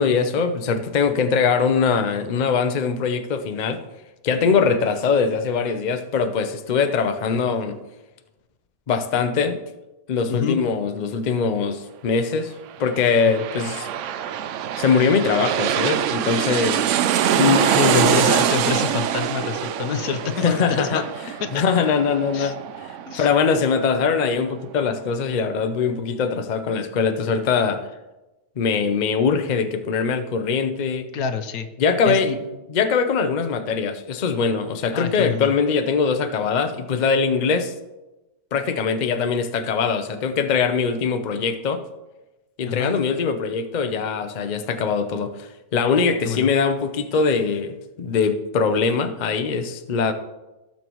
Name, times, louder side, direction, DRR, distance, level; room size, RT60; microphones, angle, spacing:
voice 1, 0.0-3.8 4.2-7.8 8.9-9.6 10.1-12.5 12.8-13.9 14.8-16.8 17.4-18.1 20.4-21.0 21.5-22.6 23.2-27.8 28.6-31.0 31.8-32.3 32.7-37.7 38.5-41.8 42.6-50.1, left 5 dB, 45° left, 8 dB, 0.6 m, -22 dB
sound 1, 12.9-24.2 24.6-24.7, right 9 dB, 70° right, 0.8 m, -24 dB
voice 2, 17.9-21.0 21.4-21.6 22.3-22.5 23.1-23.3 31.1-31.7 32.1-32.4 34.9-35.5 42.7-43.0 46.2-46.5, left 7 dB, 80° left, 8 dB, 1.2 m, -27 dB
16.0 x 6.9 x 3.0 m, 1.0 s
omnidirectional pair, 1.5 m